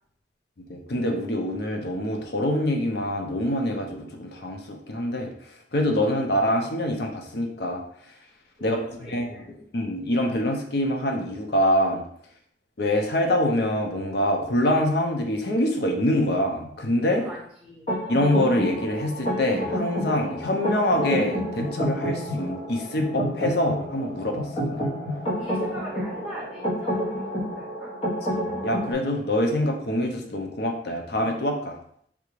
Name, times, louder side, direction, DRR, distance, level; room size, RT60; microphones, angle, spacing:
voice 1, 0.7-5.3 5.7-7.8 8.6-9.4 9.7-12.0 12.8-17.2 18.1-24.8 28.3-31.7, left 1 dB, 65° left, 2 dB, 0.6 m, -25 dB
voice 2, 8.6-9.5 17.1-17.9 25.4-27.9, equal, 5° right, -6 dB, 1.2 m, -40 dB
sound 1, 17.9-28.9, equal, 35° left, 1.1 m, -29 dB
3.5 x 2.5 x 3.1 m, 0.66 s
head